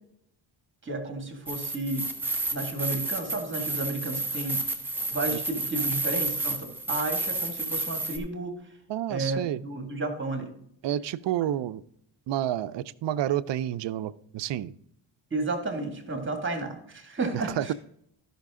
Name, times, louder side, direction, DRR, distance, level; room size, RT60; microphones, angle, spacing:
voice 1, 0.8-2.1 2.5-4.6 5.1-8.5 9.1-10.5 15.3-17.7, right 2 dB, 25° right, 4 dB, 2.0 m, -32 dB
sound 1, 1.5-8.2, right 2 dB, 5° right, 1.3 m, -31 dB
voice 2, 8.9-9.6 10.8-11.8 12.3-14.7 17.3-17.7, right 12 dB, 65° right, 15 dB, 0.5 m, -29 dB
13.0 x 5.8 x 3.6 m, 0.73 s
cardioid pair, 105°, 46 cm